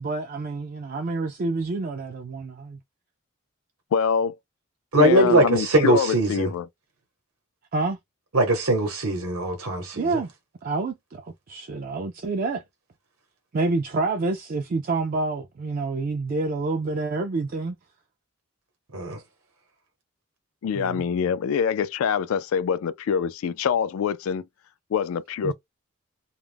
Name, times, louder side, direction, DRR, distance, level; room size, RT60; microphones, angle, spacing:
voice 1, 0.0-2.8 7.7-8.0 9.9-10.3 10.6-12.6 13.5-17.8 20.8-21.0 25.4-25.5, right 3 dB, 40° right, 0.3 m, -28 dB
voice 2, 3.9-4.4 5.0-6.7 20.6-24.4 24.9-25.5, left 7 dB, 70° left, 0.3 m, -25 dB
voice 3, 4.9-6.5 8.3-10.1 18.9-19.2, right 1 dB, 75° right, 0.8 m, -21 dB
2.3 x 2.0 x 3.3 m
head